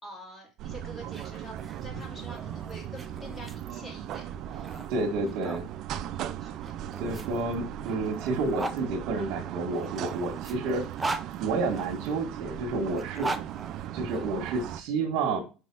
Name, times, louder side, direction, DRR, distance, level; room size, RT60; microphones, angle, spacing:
voice 1, 0.0-4.9 5.1-5.2 6.4-6.7, equal, 20° left, -1 dB, 3.4 m, -46 dB
sound 1, 0.6-14.8, right 11 dB, 50° right, 0.5 m, -38 dB
sound 2, 1.0-5.7 6.6-8.8 9.7-12.1 12.9-14.5, right 3 dB, 10° right, 0.7 m, -39 dB
voice 2, 4.9-5.7 7.0-10.8 11.4-13.3 13.9-15.4, right 3 dB, 65° right, -1 dB, 1.8 m, -30 dB
6.1 x 5.3 x 4.7 m, 0.33 s
cardioid pair, 140°, 0 cm